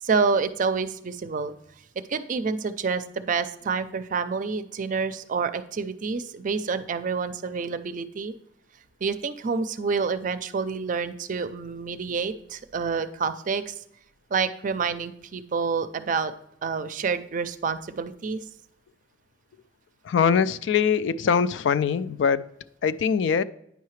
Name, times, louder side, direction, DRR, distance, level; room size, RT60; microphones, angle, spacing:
voice 1, 0.0-1.5 2.1-8.3 9.0-13.7 14.3-16.3 16.6-18.4, right 5 dB, 45° right, 0.4 m, -28 dB
voice 2, 20.1-22.5 22.8-23.4, left 6 dB, 80° left, 0.3 m, -22 dB
9.2 x 5.6 x 3.1 m
head